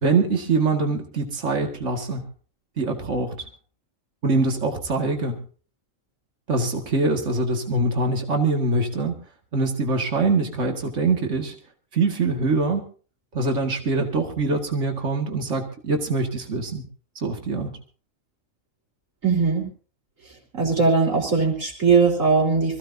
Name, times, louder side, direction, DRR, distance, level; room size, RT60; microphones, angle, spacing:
voice 1, 0.0-2.3 2.8-3.4 4.2-5.4 6.5-9.2 9.5-11.6 11.9-12.8 13.3-16.8 17.2-17.7, right 3 dB, 70° right, 3 dB, 2.4 m, -23 dB
voice 2, 19.2-19.7 20.5-22.8, right 4 dB, 85° right, -1 dB, 4.6 m, -20 dB
25.5 x 15.5 x 2.7 m, 0.38 s
omnidirectional pair, 1.3 m